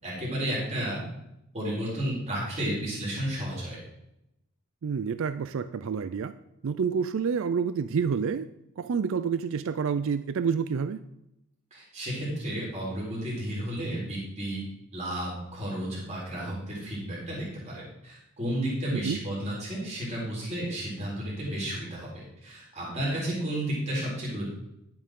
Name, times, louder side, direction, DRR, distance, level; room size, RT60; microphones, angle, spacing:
voice 1, 0.0-1.0 1.5-3.8 11.7-14.6 14.9-24.5, right 1 dB, 30° right, -5 dB, 4.0 m, -32 dB
voice 2, 4.8-6.3 6.6-8.5 8.8-11.0 18.9-19.2, right 6 dB, 60° right, 13 dB, 0.4 m, -28 dB
11.0 x 8.7 x 3.7 m, 0.84 s
head